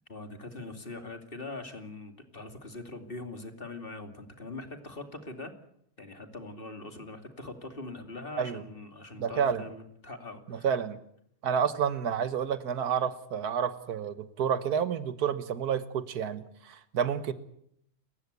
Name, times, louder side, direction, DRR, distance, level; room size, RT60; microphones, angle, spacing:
voice 1, 0.1-5.5 6.0-10.7, left 2 dB, 35° left, 6 dB, 2.8 m, -42 dB
voice 2, 9.2-9.6 10.5-11.0 11.4-17.3, right 7 dB, 90° right, 13 dB, 1.7 m, -29 dB
29.5 x 15.5 x 8.1 m, 0.73 s
omnidirectional pair, 1.6 m